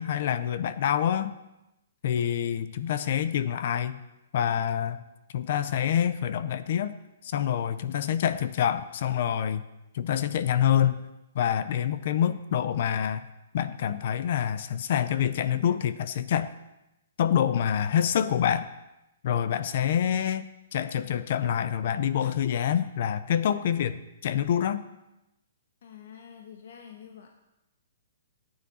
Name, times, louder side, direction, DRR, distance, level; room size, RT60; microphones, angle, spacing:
voice 1, 0.0-1.3 2.0-4.0 4.3-5.0 5.3-7.0 7.2-9.6 9.9-11.0 11.3-13.3 13.5-16.5 17.2-18.7 19.2-20.5 20.7-24.8, left 9 dB, 40° left, 14 dB, 0.5 m, -26 dB
voice 2, 25.8-27.3, left 8 dB, 55° left, 4 dB, 1.1 m, -47 dB
14.5 x 9.5 x 4.2 m, 0.94 s
hypercardioid pair, 180°, 0 cm